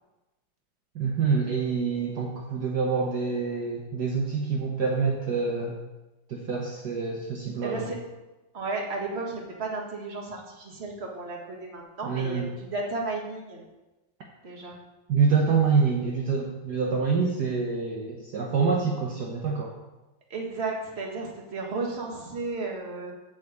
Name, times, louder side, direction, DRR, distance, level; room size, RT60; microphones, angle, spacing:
voice 1, 0.9-5.7 6.3-7.9 12.0-12.5 15.1-19.7, right 5 dB, 60° right, 0 dB, 1.5 m, -26 dB
voice 2, 7.6-7.9 8.5-13.6 14.4-14.8 20.3-23.1, right 3 dB, 35° right, 0 dB, 1.8 m, -33 dB
7.7 x 6.4 x 8.0 m, 1.1 s
omnidirectional pair, 2.1 m